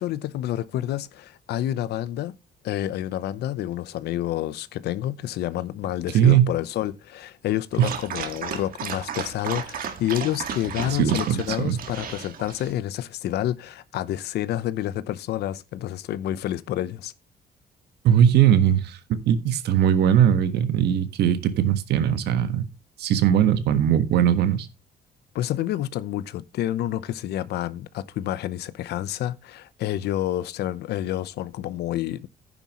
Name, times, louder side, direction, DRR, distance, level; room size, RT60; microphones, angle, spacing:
voice 1, 0.0-2.4 2.6-17.1 25.3-32.3, left 13 dB, 90° left, 0.9 m, -29 dB
voice 2, 6.1-6.5 7.8-7.9 10.9-11.8 18.0-22.6 23.0-24.7, right 9 dB, 85° right, 1.5 m, -20 dB
Dog, 7.7-12.7, right 7 dB, 60° right, 2.0 m, -34 dB
11.0 x 9.9 x 3.1 m
cardioid pair, 145°, 17 cm